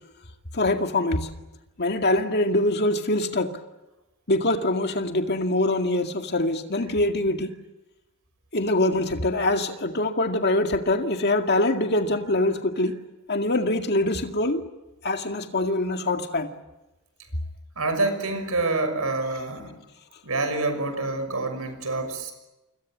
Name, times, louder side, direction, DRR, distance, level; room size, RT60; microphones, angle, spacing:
voice 1, 0.5-1.3 1.8-3.6 4.3-7.6 8.5-13.0 13.3-14.6 15.0-16.5, left 2 dB, 50° left, 2.1 m, -24 dB
voice 2, 17.8-19.7 20.2-22.3, right 2 dB, 80° right, 6.1 m, -27 dB
29.0 x 26.0 x 7.5 m
head